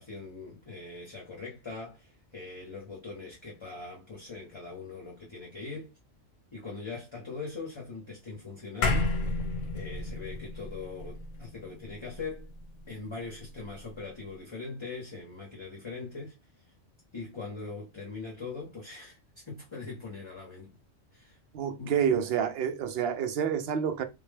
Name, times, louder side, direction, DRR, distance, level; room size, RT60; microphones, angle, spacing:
voice 1, 0.0-5.9 6.5-9.1 9.7-12.5 12.9-16.4 17.1-20.7 21.1-21.4 21.8-21.9, left 4 dB, 30° left, 0.7 m, -41 dB
sound 1, 8.8-13.4, left 2 dB, 85° left, 1.1 m, -32 dB
voice 2, 21.5-24.1, right 8 dB, 65° right, 0.7 m, -28 dB
3.5 x 2.1 x 3.2 m
omnidirectional pair, 1.3 m